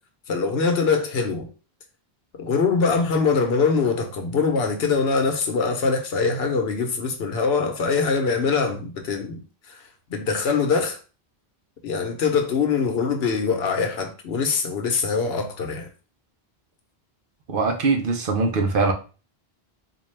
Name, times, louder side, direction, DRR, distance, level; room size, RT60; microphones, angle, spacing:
voice 1, 0.3-1.5 2.4-9.4 9.7-11.0 11.8-15.9, left 5 dB, 80° left, 1.0 m, -23 dB
voice 2, 17.5-18.9, right 3 dB, 60° right, 0.8 m, -22 dB
4.2 x 2.3 x 3.2 m
omnidirectional pair, 1.0 m